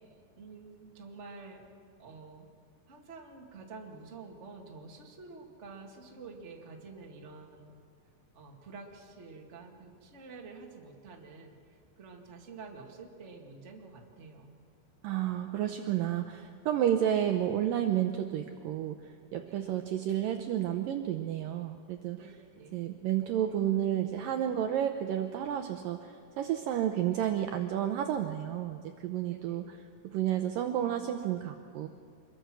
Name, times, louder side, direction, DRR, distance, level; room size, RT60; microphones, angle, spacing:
voice 1, 0.3-1.6 2.0-2.5 2.9-7.7 8.3-14.5 19.4-19.7 22.1-22.8 29.3-29.6, right 4 dB, 30° right, 1 dB, 1.3 m, -49 dB
voice 2, 15.0-22.2 22.7-29.6 30.0-31.9, right 10 dB, 85° right, 6 dB, 2.0 m, -31 dB
26.0 x 22.5 x 6.3 m, 2.2 s
omnidirectional pair, 5.0 m